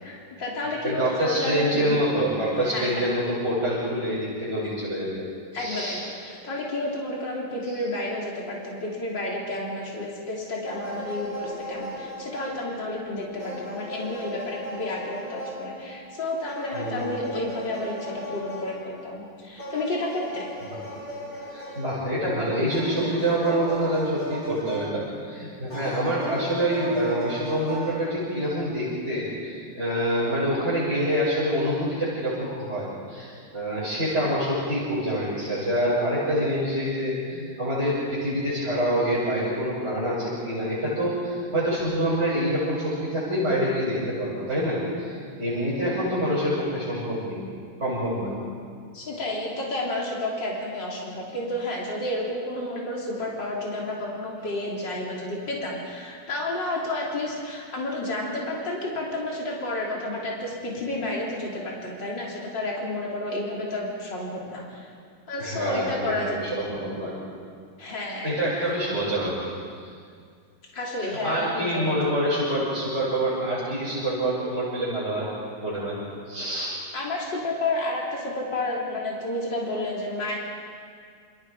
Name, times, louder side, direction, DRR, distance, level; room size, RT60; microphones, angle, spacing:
voice 1, 0.0-1.7 2.6-3.1 5.5-20.5 48.9-64.9 65.3-66.6 67.8-68.8 70.7-71.9 76.9-80.4, left 1 dB, 70° left, -3 dB, 4.1 m, -31 dB
voice 2, 0.8-5.3 5.5-6.0 7.7-7.8 16.7-17.2 21.5-47.4 47.8-48.3 65.4-67.1 68.2-69.4 71.0-75.3 75.6-76.0 76.2-76.7, equal, 35° right, -9 dB, 6.4 m, -26 dB
sound 1, 10.6-13.1 13.4-19.0 19.6-22.1 22.7-25.3 25.7-28.3, equal, 50° left, 8.6 m, -37 dB
28.5 x 27.0 x 5.0 m, 2.1 s
omnidirectional pair, 2.0 m